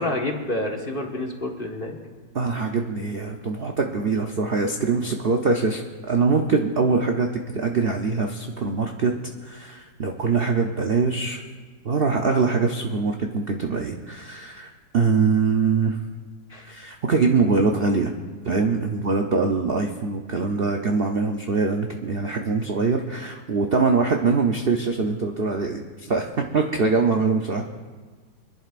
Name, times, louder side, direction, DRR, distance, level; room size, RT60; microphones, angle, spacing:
voice 1, 0.0-2.0 16.5-16.7, left 1 dB, 30° left, 1 dB, 1.5 m, -28 dB
voice 2, 2.3-9.1 9.4-11.4 11.8-16.0 16.6-18.1 18.4-27.7, right 4 dB, 50° right, 3 dB, 0.6 m, -23 dB
25.5 x 11.0 x 2.5 m, 1.4 s
omnidirectional pair, 1.9 m